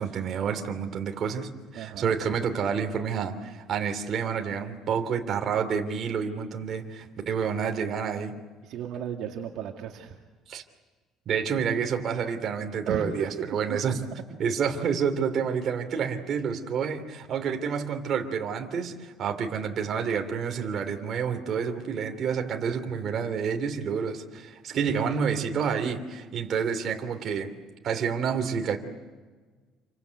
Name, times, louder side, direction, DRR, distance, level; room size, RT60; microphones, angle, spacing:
voice 1, 0.0-8.3 10.5-10.6 11.3-14.0 14.4-27.5 27.8-28.8, right 6 dB, 40° right, 4 dB, 3.0 m, -29 dB
voice 2, 1.7-2.2 8.6-10.2 12.9-13.3 13.7-14.0 24.7-25.3, right 8 dB, 60° right, 2 dB, 2.3 m, -35 dB
28.5 x 24.5 x 8.3 m, 1.4 s
cardioid pair, 160°, 0 cm